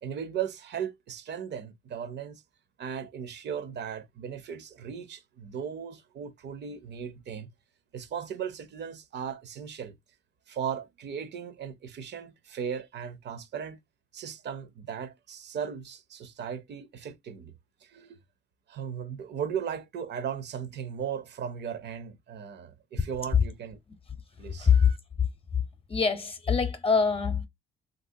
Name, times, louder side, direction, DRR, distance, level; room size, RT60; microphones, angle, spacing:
voice 1, 0.0-2.4 2.8-7.5 7.9-9.9 10.5-13.8 14.1-17.5 17.8-18.2 18.7-23.8 24.4-25.0, right 8 dB, 60° right, 0.6 m, -37 dB
voice 2, 24.6-24.9 25.9-27.5, left 6 dB, 30° left, 0.7 m, -23 dB
3.3 x 2.6 x 2.6 m
cardioid pair, 90°, 20 cm